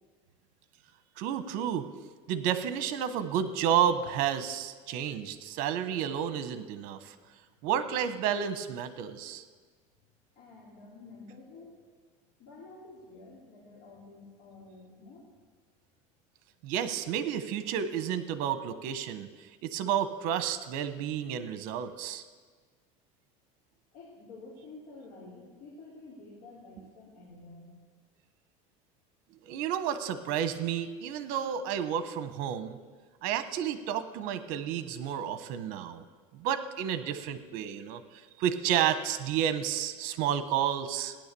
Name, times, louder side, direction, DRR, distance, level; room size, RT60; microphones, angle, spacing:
voice 1, 1.2-1.8 2.3-7.1 7.6-9.4 16.6-19.3 19.6-22.2 29.4-32.8 33.2-36.0 36.3-38.0 38.4-41.2, right 9 dB, 60° right, 11 dB, 1.1 m, -31 dB
voice 2, 10.4-11.8 12.4-15.3 23.9-27.7, left 3 dB, 50° left, -6 dB, 4.0 m, -50 dB
16.5 x 10.5 x 6.9 m, 1.5 s
cardioid pair, 155°, 17 cm